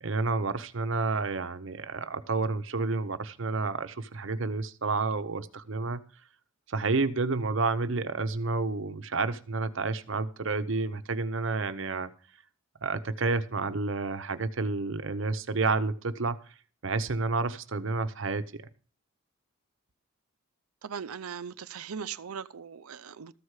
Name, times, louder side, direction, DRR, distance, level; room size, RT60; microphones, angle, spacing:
voice 1, 0.0-6.0 6.7-12.1 12.8-16.4 16.8-18.6, right 3 dB, 60° right, 0.8 m, -30 dB
voice 2, 20.8-23.3, right 7 dB, 90° right, 0.6 m, -39 dB
14.0 x 4.8 x 8.1 m
head